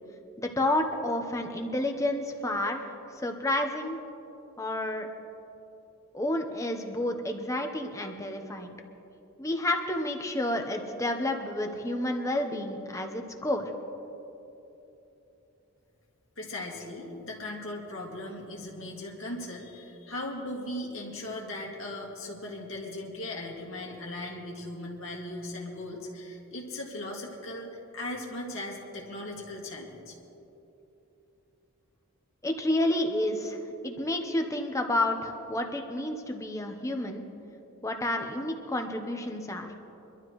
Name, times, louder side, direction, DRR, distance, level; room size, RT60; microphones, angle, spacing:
voice 1, 0.4-2.9 3.1-4.0 4.6-5.1 6.1-8.7 9.4-13.7 32.4-37.2 37.8-39.7, left 1 dB, 15° left, 4 dB, 0.9 m, -30 dB
voice 2, 16.4-30.1, left 1 dB, 60° left, -2 dB, 2.2 m, -38 dB
24.0 x 12.5 x 3.2 m, 3.0 s
head